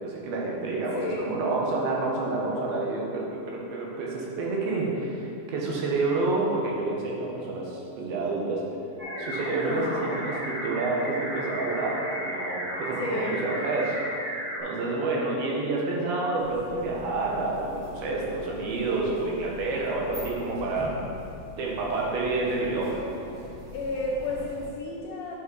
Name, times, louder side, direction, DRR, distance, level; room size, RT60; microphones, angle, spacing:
voice 1, 0.0-8.6 9.2-14.0 14.6-21.0 21.6-23.0, right 3 dB, 80° right, -3 dB, 3.1 m, -29 dB
voice 2, 1.0-1.3 9.5-10.0 13.0-13.7 23.7-25.3, left 2 dB, 75° left, -3 dB, 1.9 m, -32 dB
sound 1, 9.0-14.6, equal, 30° right, 2.0 m, -34 dB
sound 2, 16.3-24.7, left 1 dB, 55° right, 2.8 m, -43 dB
10.5 x 5.6 x 4.0 m, 2.8 s
omnidirectional pair, 4.4 m